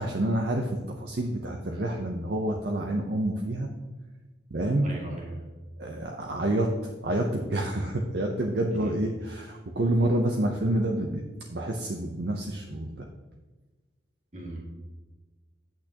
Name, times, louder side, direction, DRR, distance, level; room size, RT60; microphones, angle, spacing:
voice 1, 0.0-3.7 4.5-4.9 5.8-11.2 11.5-13.1, right 1 dB, 60° right, 2 dB, 0.7 m, -28 dB
voice 2, 4.8-5.5 8.7-9.0 14.3-14.6, right 1 dB, 40° right, -2 dB, 2.1 m, -38 dB
8.7 x 8.4 x 2.9 m, 1.2 s
head